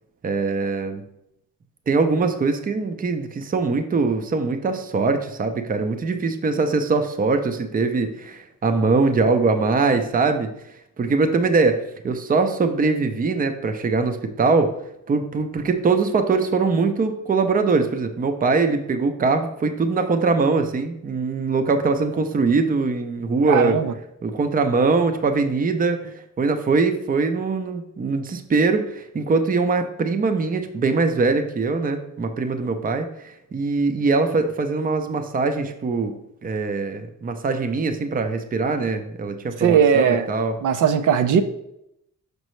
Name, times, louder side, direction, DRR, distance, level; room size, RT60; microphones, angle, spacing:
voice 1, 0.2-1.0 1.9-10.5 11.0-14.7 15.1-23.8 24.2-36.1 36.4-40.6, right 4 dB, 30° right, 7 dB, 0.5 m, -22 dB
voice 2, 23.5-23.9 39.6-40.3 40.6-41.4, right 7 dB, 75° right, 8 dB, 0.5 m, -18 dB
6.5 x 5.2 x 3.1 m, 0.79 s
wide cardioid pair, 155°, 31 cm